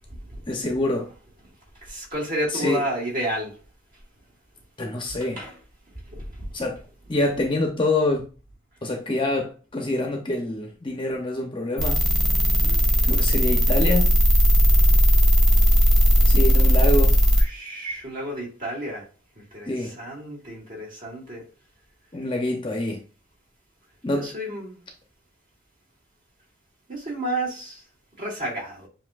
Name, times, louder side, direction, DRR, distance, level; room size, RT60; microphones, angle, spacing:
voice 1, 0.5-1.1 2.5-2.8 4.8-5.4 6.5-6.8 7.1-8.3 8.8-12.0 13.0-14.1 16.3-17.2 19.7-20.0 22.1-23.0 24.0-24.3, left 2 dB, 25° left, 0.7 m, -26 dB
voice 2, 1.9-3.5 5.4-5.6 6.1-6.5 12.6-12.9 17.4-19.1 19.4-21.4 24.1-24.8 26.9-27.8 28.2-28.9, right 1 dB, 45° right, 2.0 m, -31 dB
sound 1, 11.8-17.4, equal, ahead, 1.0 m, -17 dB
7.5 x 2.8 x 2.4 m
head